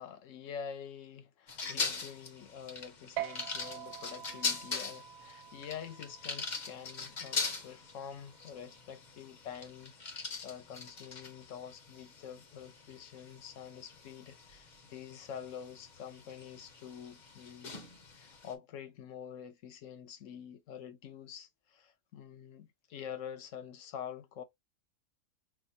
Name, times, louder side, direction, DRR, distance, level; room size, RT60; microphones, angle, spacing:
voice 1, 0.0-17.7 18.1-24.4, left 8 dB, 70° left, 1.1 m, -47 dB
sound 1, 1.5-18.5, left 4 dB, 40° left, 0.8 m, -42 dB
sound 2, 3.2-10.0, right 13 dB, 80° right, 1.0 m, -47 dB
5.9 x 2.0 x 2.7 m
omnidirectional pair, 1.5 m